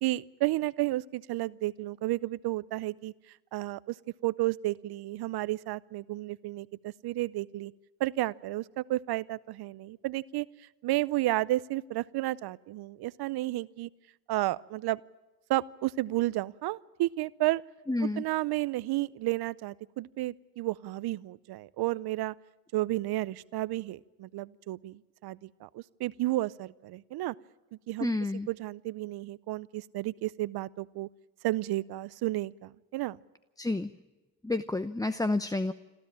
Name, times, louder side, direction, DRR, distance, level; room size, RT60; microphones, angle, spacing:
voice 1, 0.0-3.1 3.5-4.0 4.2-7.7 8.0-10.5 10.8-13.9 14.3-15.0 15.5-17.6 18.0-22.3 22.7-27.3 27.9-28.1 28.5-31.1 31.4-33.2, right 17 dB, 75° right, 20 dB, 0.7 m, -32 dB
voice 2, 17.9-18.2 28.0-28.5 33.6-33.9 34.4-35.7, left 2 dB, 10° left, 12 dB, 0.7 m, -29 dB
27.5 x 13.0 x 8.8 m, 1.2 s
supercardioid pair, 50°, 39 cm